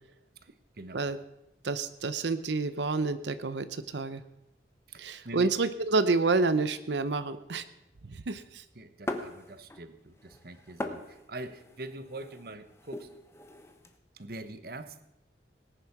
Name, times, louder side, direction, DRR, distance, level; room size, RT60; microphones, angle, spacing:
voice 1, 0.4-1.0 4.9-5.5 8.7-13.1 14.1-15.0, right 2 dB, 55° right, 11 dB, 1.1 m, -44 dB
voice 2, 1.6-4.2 5.0-7.6 8.1-8.6, right 3 dB, 75° right, 12 dB, 0.7 m, -29 dB
sound 1, 9.1-9.9 10.2-13.9, left 1 dB, 15° left, 1.1 m, -40 dB
19.0 x 10.0 x 6.0 m, 0.87 s
head